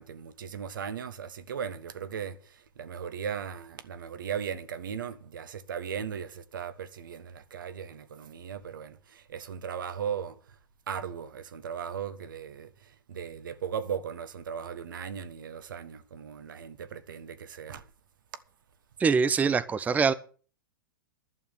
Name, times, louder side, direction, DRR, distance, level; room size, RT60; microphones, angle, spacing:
voice 1, 0.0-2.4 2.8-10.3 10.9-12.7 13.1-17.8, right 7 dB, 70° right, 1.5 m, -37 dB
voice 2, 19.0-20.1, right 5 dB, 15° right, 0.6 m, -24 dB
11.5 x 7.0 x 9.3 m
hypercardioid pair, 105°, 11 cm